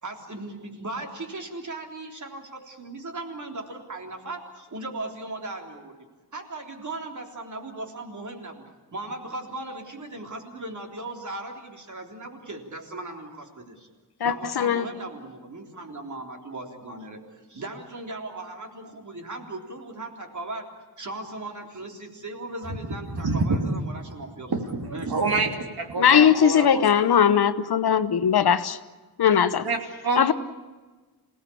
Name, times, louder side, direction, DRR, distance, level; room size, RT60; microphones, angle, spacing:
voice 1, 0.0-6.0 6.3-8.6 8.9-13.9 14.2-20.7 21.0-24.6 24.9-25.1, right 2 dB, 50° right, 2 dB, 3.6 m, -37 dB
voice 2, 14.2-14.8 26.0-28.8 29.2-29.6 30.2-30.3, left 8 dB, 75° left, 13 dB, 1.1 m, -19 dB
voice 3, 23.1-23.8 24.5-25.5 25.8-27.2 29.6-29.8 30.0-30.3, right 3 dB, 70° right, 4 dB, 3.1 m, -27 dB
27.5 x 18.0 x 8.6 m, 1.3 s
wide cardioid pair, 150°, 38 cm